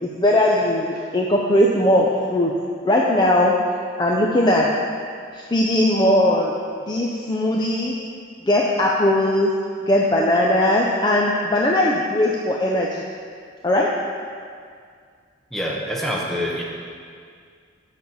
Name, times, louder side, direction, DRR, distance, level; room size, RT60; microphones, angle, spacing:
voice 1, 0.0-2.5 2.8-3.6 4.0-4.7 5.3-6.5 6.9-7.9 8.5-9.5 9.9-13.0 13.6-13.9, left 1 dB, 20° left, -2 dB, 0.4 m, -19 dB
voice 2, 15.5-16.6, equal, ahead, -3 dB, 0.9 m, -26 dB
7.0 x 6.2 x 5.4 m, 2.1 s
head